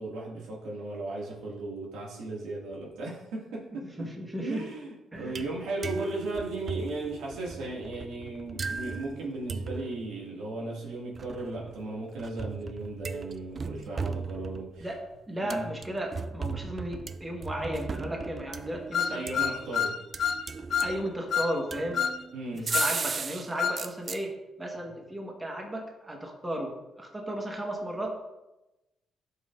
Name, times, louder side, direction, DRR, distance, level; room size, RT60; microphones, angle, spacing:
voice 1, 0.0-4.1 4.3-14.9 15.5-15.6 19.1-20.0 22.3-22.7, right 2 dB, 85° right, -3 dB, 2.2 m, -36 dB
voice 2, 4.0-4.6 5.1-5.5 14.8-19.3 20.8-22.0 22.5-24.3 24.6-28.1, right 1 dB, 15° right, 0 dB, 1.4 m, -35 dB
sound 1, 5.1-5.6 5.8-10.1 11.2-15.0 15.5-19.8 20.1-21.2 21.7-23.5 23.8-24.2, right 4 dB, 40° right, 0.4 m, -37 dB
sound 2, 18.9-20.4 20.7-20.9 21.3-21.5 21.9-22.2 22.7-22.9 23.6-23.8, left 7 dB, 60° left, 0.4 m, -28 dB
11.5 x 5.5 x 2.6 m, 0.98 s
cardioid pair, 90°, 0 cm